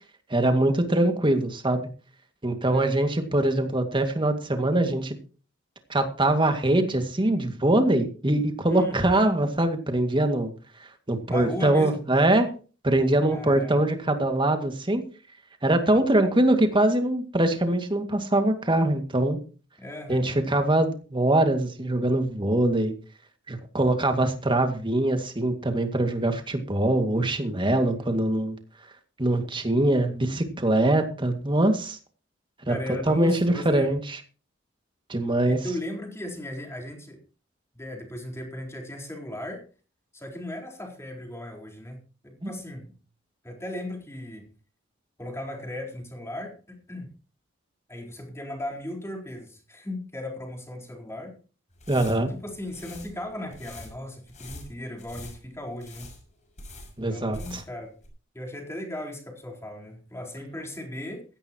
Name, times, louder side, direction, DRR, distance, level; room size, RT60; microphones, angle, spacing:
voice 1, 0.3-1.8 2.4-5.2 5.9-10.5 11.1-12.5 12.8-15.0 15.6-19.4 20.1-22.9 23.5-28.6 29.2-32.0 32.7-32.8 33.1-34.2 35.1-35.6 42.4-42.5 51.9-52.3 57.0-57.6, right 1 dB, 25° right, 6 dB, 2.1 m, -23 dB
voice 2, 2.7-3.1 8.7-9.2 11.3-12.0 13.2-13.8 19.8-20.3 27.7-28.1 32.7-33.9 35.5-37.2 37.7-39.6 40.1-42.0 42.2-42.9 43.4-44.4 45.2-47.1 47.9-51.3 52.2-56.1 57.1-57.9 58.3-61.2, left 1 dB, 15° left, 1 dB, 4.2 m, -37 dB
sound 1, 51.7-57.8 58.0-58.1, left 2 dB, 40° left, 6.4 m, -45 dB
16.5 x 14.5 x 3.0 m, 0.37 s
head